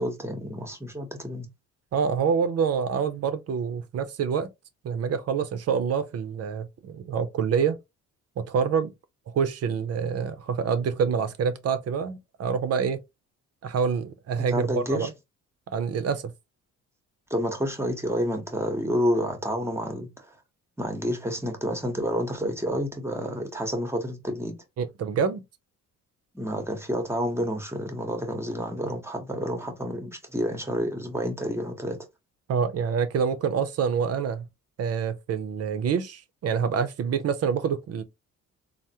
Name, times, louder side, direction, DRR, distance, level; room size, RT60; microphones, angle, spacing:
voice 1, 0.0-1.5 14.5-15.1 17.3-20.3 20.8-24.5 26.3-32.0, equal, 10° right, 0.8 m, -29 dB
voice 2, 1.9-4.5 4.8-7.8 8.4-8.9 9.3-13.0 13.6-15.1 15.7-16.3 24.8-25.4 32.5-34.5 34.8-38.0, right 6 dB, 55° right, 0.6 m, -26 dB
3.4 x 2.1 x 2.7 m
cardioid pair, 90°, 30 cm